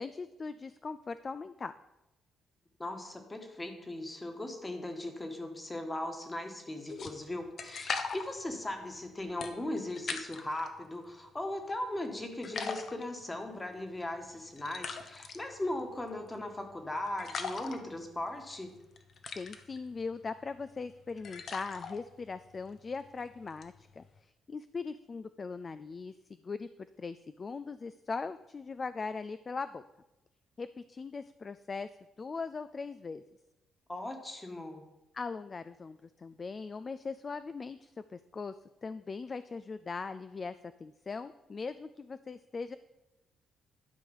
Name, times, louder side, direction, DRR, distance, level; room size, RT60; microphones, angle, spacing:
voice 1, 0.0-1.7 19.3-26.1 26.4-26.7 27.0-29.8 30.6-31.9 32.2-33.2 35.1-38.5 38.8-42.8, left 4 dB, 35° left, 12 dB, 0.3 m, -40 dB
voice 2, 2.8-18.7 33.9-34.8, left 1 dB, 20° left, 5 dB, 1.5 m, -38 dB
sound 1, 6.9-10.7 11.1-12.1 12.4-24.2, left 5 dB, 55° left, 0.9 m, -42 dB
11.5 x 4.9 x 5.4 m, 0.98 s
cardioid pair, 90°, 0 cm